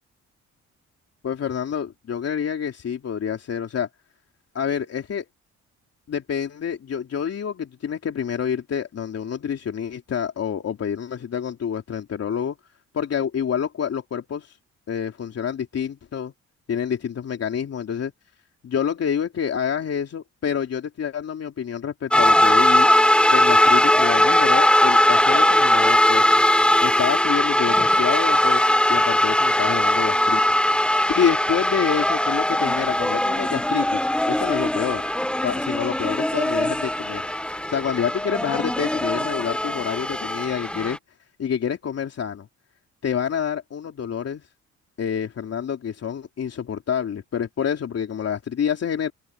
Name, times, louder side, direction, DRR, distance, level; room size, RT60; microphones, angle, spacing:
voice 1, 1.2-3.9 4.5-5.2 6.1-12.6 12.9-14.6 14.9-16.3 16.7-18.1 18.6-22.9 23.3-26.4 26.8-30.4 30.8-35.0 35.4-37.3 37.7-41.0 41.4-42.5 43.0-44.4 45.0-49.1, left 8 dB, 55° left, 3.4 m, -27 dB
sound 1, 22.1-41.0, left 1 dB, 5° left, 0.9 m, -20 dB
open air
cardioid pair, 90°, 30 cm